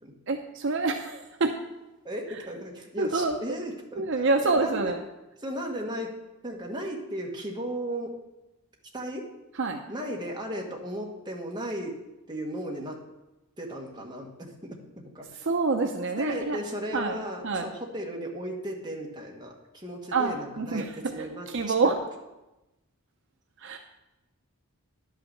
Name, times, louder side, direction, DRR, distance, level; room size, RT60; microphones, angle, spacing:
voice 1, 0.3-1.5 3.0-3.4 4.0-5.0 9.6-9.8 15.5-16.6 16.9-17.2 17.4-17.7 20.1-20.9 21.2-21.9 23.6-23.8, right 3 dB, 55° right, 4 dB, 0.6 m, -26 dB
voice 2, 2.0-5.0 5.4-6.2 6.4-8.1 8.9-9.3 9.9-12.0 12.3-13.0 13.6-15.4 16.2-21.9, equal, 20° right, -1 dB, 1.4 m, -36 dB
10.5 x 5.8 x 6.5 m, 0.99 s
head